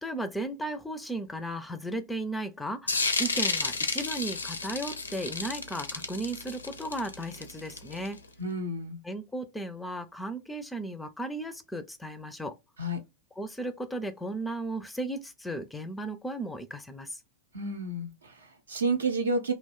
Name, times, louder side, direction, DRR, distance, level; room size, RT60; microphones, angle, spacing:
voice 1, 0.0-2.9 3.2-8.2 9.0-12.6 13.4-17.2, right 1 dB, 5° left, 0.4 m, -35 dB
sound 1, 2.9-8.2, left 4 dB, 75° left, 0.4 m, -31 dB
voice 2, 8.4-9.0 12.8-13.0 17.5-19.5, right 2 dB, 75° right, 0.7 m, -30 dB
2.4 x 2.2 x 3.5 m
figure-of-eight pair, 90°, 0 cm